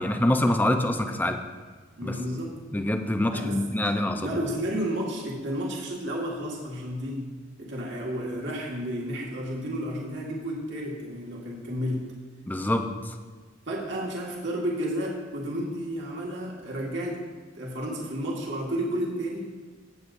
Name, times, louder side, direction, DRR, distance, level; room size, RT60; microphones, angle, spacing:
voice 1, 0.0-1.4 2.0-2.1 2.7-4.4 12.5-13.1, left 1 dB, 10° left, 6 dB, 0.6 m, -25 dB
voice 2, 2.0-2.6 3.3-3.6 4.2-7.3 7.6-12.1 13.7-17.2 17.5-19.5, equal, 65° right, -3 dB, 1.8 m, -31 dB
15.5 x 8.0 x 2.6 m, 1.4 s
head